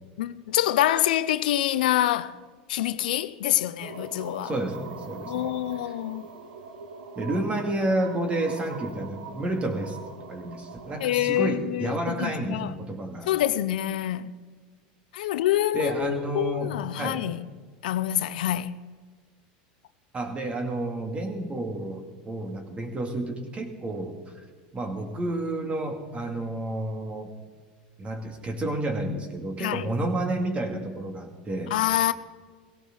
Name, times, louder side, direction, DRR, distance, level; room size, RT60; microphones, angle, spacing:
voice 1, 0.2-2.4 2.7-4.5 5.3-6.2 11.0-12.7 13.3-14.3 15.1-17.4 17.8-18.8 29.6-29.9 31.7-32.1, left 13 dB, 80° left, 0.5 m, -26 dB
sound 1, 3.8-11.1, right 5 dB, 85° right, 1.2 m, -42 dB
voice 2, 4.4-5.5 5.8-5.9 7.2-10.0 10.3-13.3 15.7-17.2 20.1-24.2 24.7-27.3 28.0-31.8, right 1 dB, 25° right, 2.4 m, -30 dB
17.0 x 16.5 x 4.0 m
supercardioid pair, 105°, 5 cm